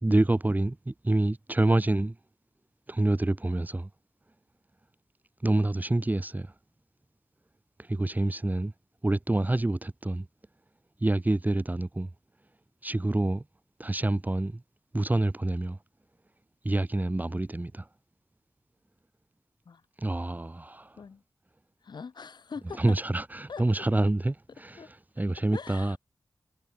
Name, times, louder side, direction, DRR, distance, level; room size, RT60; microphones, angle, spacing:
voice 1, 0.0-2.2 2.9-3.9 5.4-6.5 7.8-8.7 9.0-10.3 11.0-12.1 12.8-13.4 13.8-14.6 14.9-15.8 16.6-17.9 20.0-21.0 22.8-26.0, right 2 dB, 25° right, 1.9 m, -27 dB
voice 2, 21.8-23.0 23.5-23.6 24.8-24.9 25.5-26.0, left 5 dB, 85° left, 3.4 m, -42 dB
wide cardioid pair, 85°, 7 cm